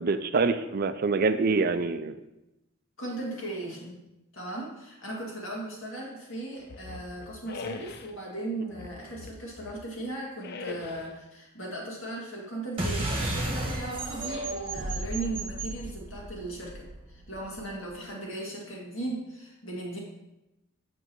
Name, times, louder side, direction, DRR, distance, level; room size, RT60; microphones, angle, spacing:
voice 1, 0.0-2.2, right 4 dB, 45° right, 10 dB, 0.4 m, -25 dB
voice 2, 3.0-4.0 4.3-20.0, right 2 dB, 65° left, -3 dB, 2.1 m, -37 dB
sound 1, 6.7-8.1 8.7-9.9 10.4-11.2, left 4 dB, 50° left, 0.5 m, -42 dB
sound 2, 12.8-17.7, right 1 dB, 25° right, 1.1 m, -33 dB
7.9 x 6.2 x 3.0 m, 0.92 s
head